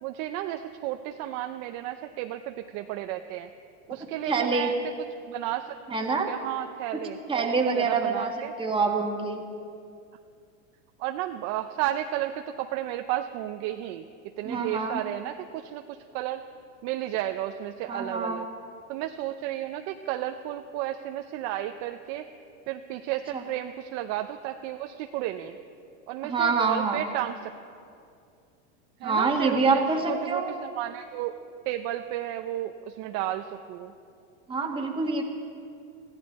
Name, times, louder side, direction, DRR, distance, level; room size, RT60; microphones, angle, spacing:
voice 1, 0.0-3.5 3.9-4.8 5.3-8.5 11.0-14.1 14.4-16.4 16.8-18.5 18.9-22.3 22.7-25.6 26.1-27.5 29.0-31.3 31.7-33.9, right 13 dB, 40° right, 6 dB, 0.6 m, -33 dB
voice 2, 4.3-4.7 5.9-6.3 6.9-7.0 7.3-9.4 14.4-15.0 17.9-18.4 23.3-23.4 26.2-27.1 29.0-30.5 34.5-35.2, right 4 dB, 15° right, 2 dB, 1.5 m, -26 dB
21.5 x 16.0 x 4.2 m, 2.5 s
supercardioid pair, 140°, 41 cm